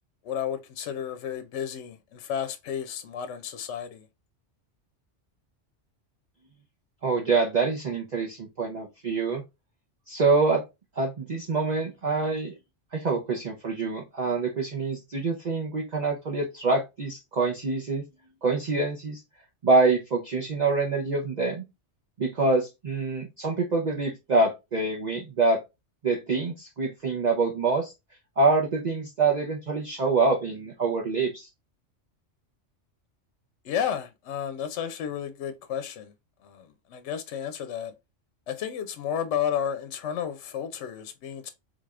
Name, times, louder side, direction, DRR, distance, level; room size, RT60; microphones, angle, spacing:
voice 1, 0.2-4.1 33.6-36.1 36.4-37.9 38.5-41.5, left 8 dB, 75° left, 0.8 m, -32 dB
voice 2, 7.0-9.4 10.1-10.6 11.0-12.5 12.9-18.0 18.4-19.2 19.6-21.6 22.2-25.6 26.0-27.9 28.4-31.5, right 3 dB, 45° right, 0.7 m, -25 dB
3.7 x 3.3 x 2.4 m
omnidirectional pair, 1.2 m